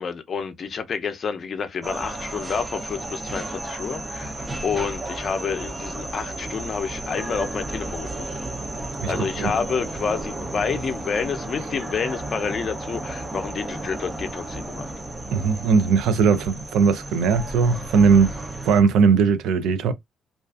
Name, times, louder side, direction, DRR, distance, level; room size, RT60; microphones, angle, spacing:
voice 1, 0.0-8.1 9.1-14.9, left 6 dB, 50° left, 0.5 m, -29 dB
sound 1, 1.8-18.8, right 2 dB, 20° right, 0.5 m, -33 dB
voice 2, 15.3-18.4 18.6-19.9, right 5 dB, 85° right, 0.3 m, -19 dB
2.4 x 2.3 x 2.3 m
cardioid pair, 90°, 0 cm